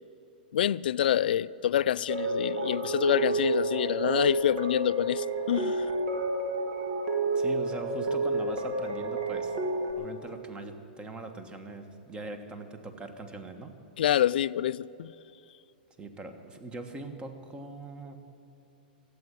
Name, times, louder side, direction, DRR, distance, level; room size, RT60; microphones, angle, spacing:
voice 1, 0.5-5.9 14.0-15.1, left 11 dB, 75° left, 0.3 m, -27 dB
sound 1, 2.1-9.9, right 2 dB, 60° right, 2.2 m, -30 dB
voice 2, 7.3-9.5 10.0-13.7 16.0-18.2, right 2 dB, 20° right, 1.4 m, -41 dB
14.0 x 8.4 x 9.4 m
hypercardioid pair, 115°, 5 cm